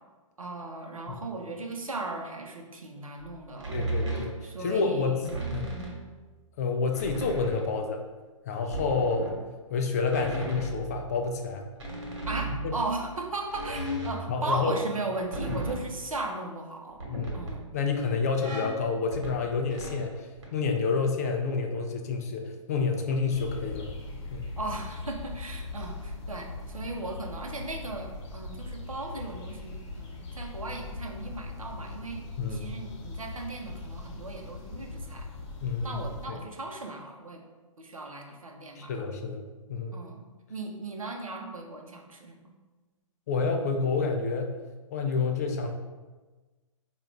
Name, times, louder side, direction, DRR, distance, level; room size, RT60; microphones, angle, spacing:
voice 1, 0.4-3.8 4.4-5.3 5.6-6.0 12.3-17.0 17.3-17.7 24.6-32.2 32.5-35.3 35.8-37.4 37.8-38.9 39.9-42.5, right 2 dB, 75° right, 2 dB, 0.7 m, -37 dB
sound 1, 3.2-3.3 3.6-4.7 5.2-6.0 6.9-7.8 8.7-9.3 10.0-11.4 11.8-16.0 16.9-17.7 18.4-20.4, right 2 dB, 55° right, 1.2 m, -36 dB
voice 2, 3.7-4.3 4.6-5.7 6.6-8.0 8.5-9.3 9.7-11.6 12.6-12.7 14.3-14.7 15.5-15.6 17.1-17.4 17.7-23.9 24.3-24.5 32.4-32.7 35.6-36.0 36.3-36.4 38.8-39.4 39.7-39.9 43.3-44.6 44.9-45.7, left 4 dB, 30° left, 3 dB, 0.3 m, -29 dB
sound 2, 23.3-36.3, left 3 dB, 50° left, 0.9 m, -40 dB
4.6 x 2.4 x 3.2 m, 1.3 s
figure-of-eight pair, 120°, 18 cm